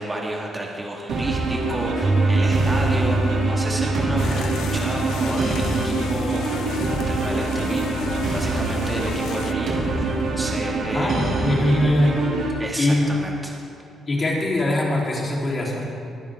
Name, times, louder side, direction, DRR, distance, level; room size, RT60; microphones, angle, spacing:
voice 1, 0.0-11.3 12.6-13.5, right 1 dB, 15° right, -2 dB, 2.2 m, -31 dB
sound 1, 1.1-12.5, right 3 dB, 70° right, 2.7 m, -25 dB
Piano, 2.0-10.1, right 2 dB, 30° right, 1.2 m, -27 dB
sound 2, 4.2-9.5, left 8 dB, 75° left, 0.6 m, -34 dB
voice 2, 10.9-12.2 12.8-13.1 14.1-15.9, left 1 dB, 30° left, -4 dB, 3.8 m, -22 dB
23.0 x 9.9 x 3.7 m, 2.5 s
cardioid pair, 90°, 0 cm